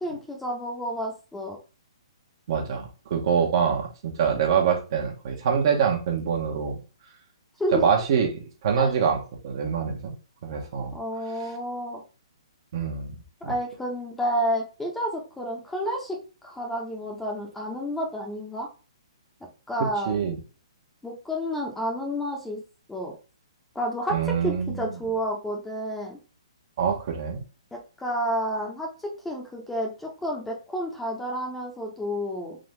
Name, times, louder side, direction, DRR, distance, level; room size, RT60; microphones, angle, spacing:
voice 1, 0.0-1.6 7.6-7.8 8.8-8.9 10.9-12.0 13.4-16.2 16.4-18.7 19.7-20.3 21.0-22.6 22.9-23.1 23.7-26.2 27.7-32.6, equal, 5° left, 0 dB, 1.0 m, -30 dB
voice 2, 2.5-6.8 7.7-8.3 8.6-10.1 10.4-11.0 12.7-13.2 13.4-13.5 20.0-20.4 24.1-25.0 26.8-27.4, right 7 dB, 50° right, 1 dB, 1.2 m, -25 dB
4.0 x 3.3 x 3.3 m, 0.33 s
hypercardioid pair, 145°, 3 cm